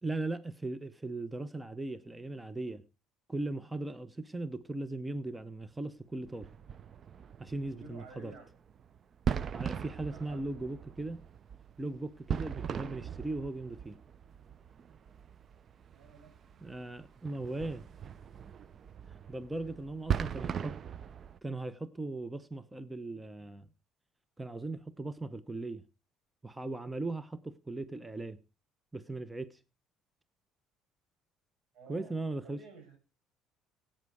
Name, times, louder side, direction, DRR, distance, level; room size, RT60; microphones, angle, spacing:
voice 1, 0.0-2.8 3.3-6.5 7.4-8.3 9.5-11.2 11.8-14.0 16.6-17.9 19.1-20.8 21.4-23.7 24.4-25.8 26.4-28.4 28.9-29.6 31.9-32.6, right 2 dB, 10° right, 0.9 m, -38 dB
sound 1, 6.3-21.4, right 8 dB, 45° right, 0.6 m, -40 dB
voice 2, 7.6-8.5 10.1-10.5 15.9-16.9 19.8-20.2 31.7-32.2 32.4-33.0, right 4 dB, 75° right, 7.1 m, -53 dB
16.5 x 8.9 x 4.8 m
cardioid pair, 100°, 0 cm